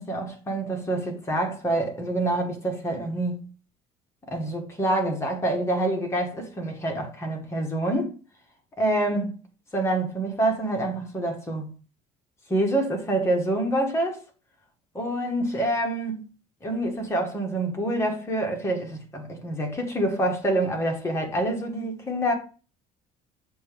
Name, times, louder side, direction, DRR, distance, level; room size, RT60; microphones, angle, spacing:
voice 1, 0.0-3.4 4.3-8.2 8.8-9.4 9.7-11.7 12.5-14.2 14.9-16.2 16.6-22.3, right 1 dB, 20° left, 1.5 m, -26 dB
6.7 x 2.9 x 5.2 m
cardioid pair, 145°, 15 cm